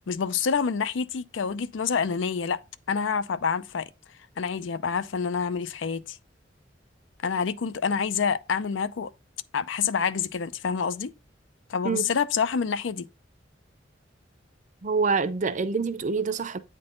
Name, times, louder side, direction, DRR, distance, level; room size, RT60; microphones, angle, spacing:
voice 1, 0.1-2.6 2.9-3.9 4.4-6.2 7.2-9.1 9.5-11.1 11.7-13.1, left 6 dB, 90° left, 0.5 m, -27 dB
voice 2, 14.8-16.6, right 4 dB, 40° right, 0.5 m, -26 dB
8.8 x 3.8 x 3.8 m
head